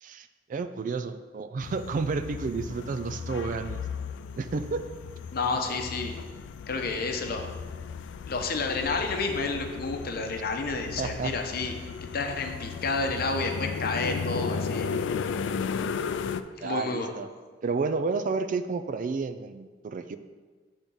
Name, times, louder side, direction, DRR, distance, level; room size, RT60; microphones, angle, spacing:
voice 1, 0.0-3.8 4.4-4.8 11.0-11.3 16.6-17.3 17.6-20.2, right 4 dB, 45° right, 10 dB, 0.3 m, -31 dB
sound 1, 1.6-16.4, left 6 dB, 80° left, 0.3 m, -35 dB
voice 2, 5.3-6.1 6.7-7.6 8.3-11.7 12.1-14.9 16.6-17.1, left 3 dB, 55° left, 4 dB, 0.7 m, -30 dB
7.3 x 3.6 x 5.3 m, 1.4 s
head